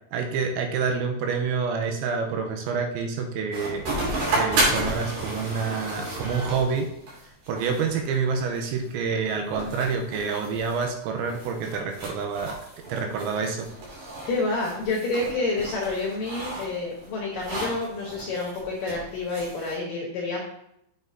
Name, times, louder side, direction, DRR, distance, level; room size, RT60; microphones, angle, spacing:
voice 1, 0.1-3.8 4.3-6.9 7.5-12.6 12.9-13.7, right 5 dB, 80° right, 3 dB, 3.0 m, -27 dB
sound 1, 3.5-19.8, right 1 dB, 60° right, 4.1 m, -32 dB
voice 2, 14.3-20.4, left 3 dB, 70° left, -3 dB, 2.1 m, -28 dB
7.9 x 7.1 x 2.7 m, 0.78 s
omnidirectional pair, 5.5 m